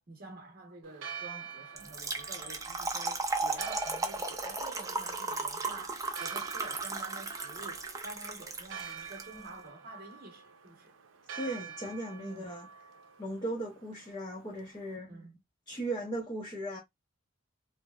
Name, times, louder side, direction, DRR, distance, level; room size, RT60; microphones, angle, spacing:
voice 1, 0.0-10.9 12.2-12.6 15.0-15.4, right 2 dB, 50° right, 0.9 m, -49 dB
Church bell, 0.8-14.9, right 7 dB, 85° right, 0.5 m, -48 dB
Trickle dribble / Fill (with liquid), 1.8-9.2, right 3 dB, 20° right, 0.5 m, -35 dB
voice 2, 11.4-12.7 13.2-15.1 15.7-16.8, right 1 dB, 25° left, 0.6 m, -37 dB
2.9 x 2.0 x 2.3 m
head